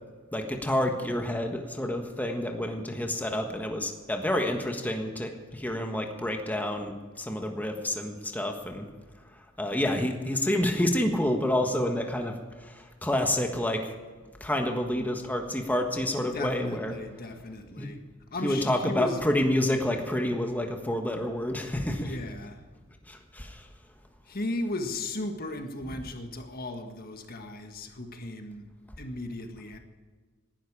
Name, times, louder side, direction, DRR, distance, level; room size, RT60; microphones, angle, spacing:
voice 1, 0.3-8.9 9.3-13.9 14.4-16.9 17.8-17.9 18.4-22.1 23.1-23.7, left 1 dB, 10° left, 1.4 m, -29 dB
voice 2, 16.3-18.0 18.3-19.4 22.0-22.7 24.2-28.7 29.0-29.8, left 2 dB, 45° left, 1.6 m, -36 dB
19.0 x 12.0 x 4.8 m
head